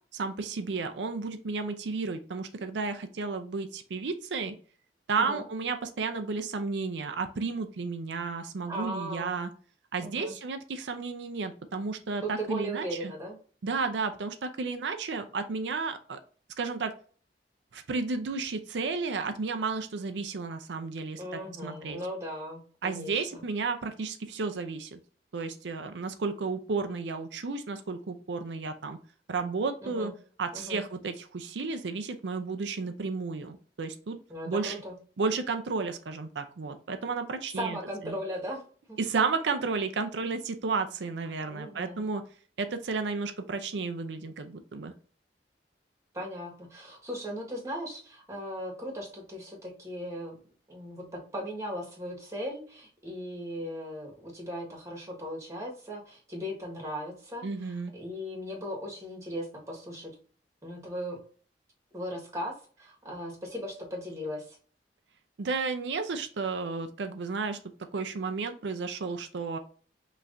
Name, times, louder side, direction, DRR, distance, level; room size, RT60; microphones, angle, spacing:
voice 1, 0.1-4.6 5.1-9.5 9.9-13.1 13.6-16.2 16.6-16.9 17.7-21.2 21.6-22.0 22.8-25.0 25.3-29.0 29.3-30.1 30.4-34.2 34.5-34.8 35.2-37.8 38.0-38.1 39.0-42.2 42.6-44.9 57.4-57.9 65.4-67.6 67.9-69.6, right 4 dB, 80° right, 8 dB, 0.5 m, -32 dB
voice 2, 8.7-9.4 10.0-10.3 12.2-13.4 21.2-23.4 29.8-30.1 30.5-30.8 34.3-34.9 37.5-38.6 38.9-39.0 41.3-42.0 46.1-50.4 50.7-60.1 60.6-61.2 61.9-64.6, equal, 20° right, -2 dB, 1.5 m, -38 dB
5.6 x 3.1 x 2.6 m, 0.42 s
head